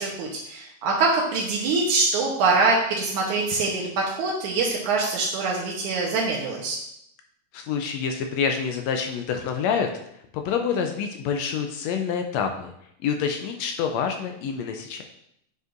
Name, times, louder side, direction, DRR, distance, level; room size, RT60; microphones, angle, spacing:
voice 1, 0.0-6.8, right 3 dB, 80° right, -3 dB, 2.3 m, -24 dB
voice 2, 7.5-9.9 10.3-12.7 13.0-15.0, left 6 dB, 80° left, 4 dB, 1.6 m, -27 dB
9.3 x 5.4 x 2.5 m, 0.74 s
omnidirectional pair, 3.5 m